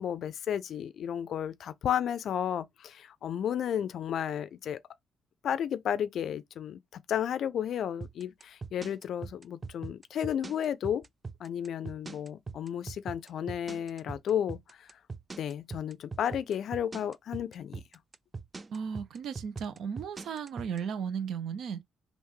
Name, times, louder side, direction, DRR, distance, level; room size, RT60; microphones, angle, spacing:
voice 1, 0.0-4.8 5.4-6.8 7.1-11.0 11.4-14.8 15.4-17.8, left 9 dB, 65° left, 0.4 m, -33 dB
sound 1, 8.0-20.8, right 4 dB, 25° right, 0.3 m, -41 dB
voice 2, 18.7-21.8, right 7 dB, 70° right, 0.6 m, -35 dB
3.5 x 2.5 x 3.1 m
cardioid pair, 90°, 0 cm